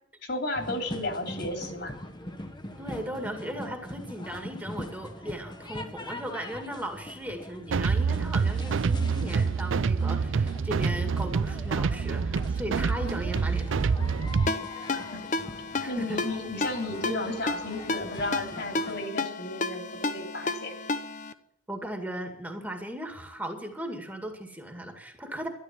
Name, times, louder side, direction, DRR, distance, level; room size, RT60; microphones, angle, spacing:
voice 1, 0.2-1.9 14.9-15.0 15.9-19.8 20.1-20.8, left 1 dB, 55° left, 5 dB, 3.4 m, -33 dB
sound 1, 0.5-19.1, left 1 dB, 20° left, 1.3 m, -42 dB
voice 2, 2.8-13.9 15.8-16.2 21.7-25.5, right 1 dB, 10° right, 4 dB, 2.1 m, -37 dB
sound 2, 7.7-14.5, right 5 dB, 75° right, 0.5 m, -26 dB
Ringtone, 14.5-21.3, left 3 dB, 40° left, 0.9 m, -32 dB
12.5 x 12.0 x 7.4 m, 0.77 s
head